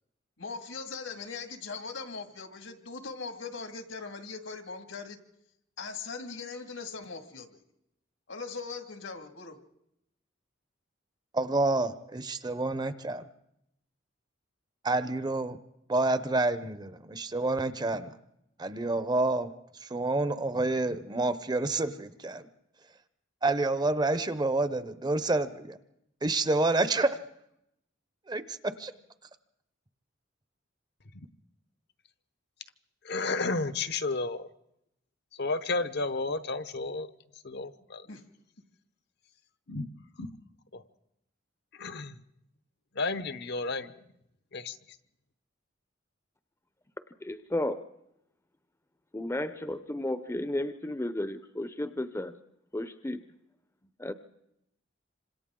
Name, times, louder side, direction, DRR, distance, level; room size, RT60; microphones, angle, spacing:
voice 1, 0.4-5.2 5.8-7.6 8.3-9.6 38.0-38.2, left 4 dB, 75° left, 6 dB, 2.1 m, -40 dB
voice 2, 11.3-13.2 14.8-15.6 15.9-18.1 18.6-19.5 19.9-22.5 23.4-25.8 26.2-27.2 28.3-28.9, right 2 dB, 20° right, 12 dB, 0.7 m, -28 dB
voice 3, 33.0-34.5 35.4-37.1 37.4-38.1 39.7-39.9 40.2-40.3 40.7-40.8 41.7-42.2 42.9-43.9 44.5-44.8, left 3 dB, 60° left, 11 dB, 0.9 m, -32 dB
voice 4, 47.2-47.8 49.1-52.3 52.7-53.2 54.0-54.1, left 1 dB, 15° left, 10 dB, 0.6 m, -33 dB
27.0 x 26.0 x 3.7 m, 0.81 s
head